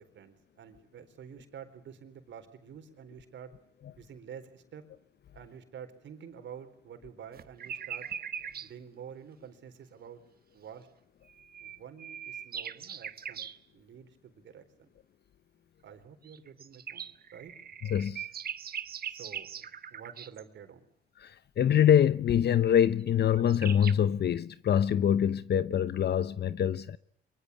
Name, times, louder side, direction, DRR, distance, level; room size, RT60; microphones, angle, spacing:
voice 1, 0.0-3.5 4.0-4.8 5.3-8.1 8.6-10.2 10.5-10.9 11.6-13.5 13.7-14.9 15.8-17.5 19.1-20.9, right 8 dB, 65° right, 4.3 m, -49 dB
sound 1, 7.3-8.7 11.3-13.6 16.2-20.4 23.1-23.2 23.4-23.9, right 8 dB, 50° right, 1.4 m, -40 dB
voice 2, 17.9-18.3 21.2-27.0, left 9 dB, 55° left, 0.9 m, -25 dB
24.5 x 23.5 x 8.4 m
cardioid pair, 90°, 20 cm